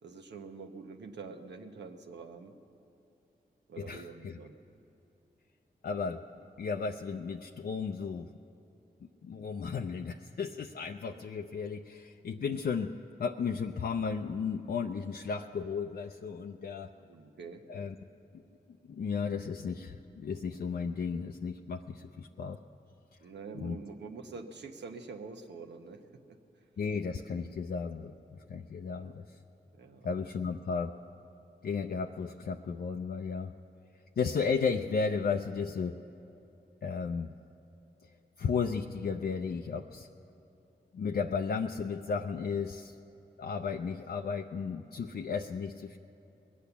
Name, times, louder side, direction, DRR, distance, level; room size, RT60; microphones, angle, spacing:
voice 1, 0.0-2.5 3.7-4.5 17.0-17.6 23.2-26.0 26.3-26.4 29.0-29.1 29.7-30.1, right 4 dB, 85° right, 5 dB, 1.0 m, -46 dB
voice 2, 3.8-4.4 5.8-6.2 6.6-8.3 9.2-12.9 13.2-16.9 17.7-18.0 18.8-22.6 23.5-23.8 26.8-29.1 30.0-30.9 31.6-33.5 34.2-36.0 36.8-37.3 38.4-40.1 40.9-42.9 43.4-46.0, left 5 dB, 65° left, 3 dB, 0.5 m, -34 dB
20.5 x 8.5 x 7.0 m, 2.9 s
cardioid pair, 45°, 18 cm